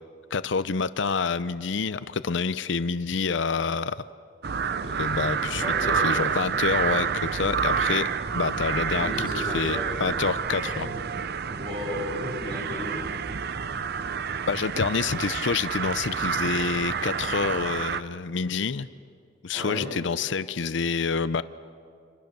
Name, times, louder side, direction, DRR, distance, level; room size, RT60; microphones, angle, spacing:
voice 1, 0.3-4.0 4.8-5.7 5.9-8.1 8.3-10.9 14.5-18.9 19.4-21.4, left 5 dB, 65° left, 14 dB, 0.6 m, -27 dB
sound 1, 4.4-18.0, right 6 dB, 55° right, 0.6 m, -29 dB
voice 2, 5.5-6.0 8.9-9.8 10.6-10.9 11.5-13.0 19.5-19.9, left 1 dB, 25° right, -1 dB, 7.4 m, -34 dB
27.5 x 27.0 x 6.8 m, 2.4 s
head